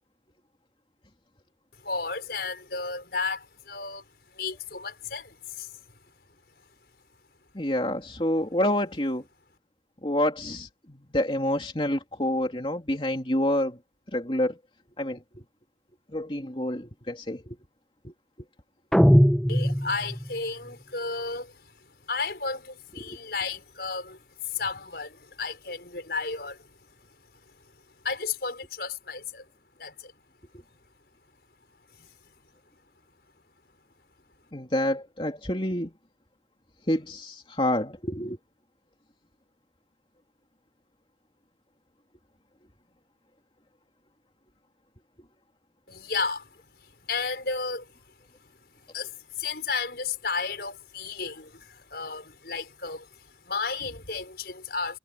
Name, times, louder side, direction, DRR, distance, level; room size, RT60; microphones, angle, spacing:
voice 1, 1.8-4.0 4.3-5.8 19.5-21.7 22.1-26.7 28.0-29.5 29.8-30.1 31.9-32.1 45.9-46.5 47.1-47.9 48.9-55.0, left 4 dB, 60° left, 5.7 m, -33 dB
voice 2, 7.5-9.2 10.0-13.8 14.1-14.6 15.0-15.4 16.1-17.6 18.0-18.1 23.0-23.2 34.5-35.9 36.9-38.4, left 1 dB, 30° left, 3.1 m, -28 dB
sound 1, 18.9-20.4, equal, ahead, 0.8 m, -20 dB
head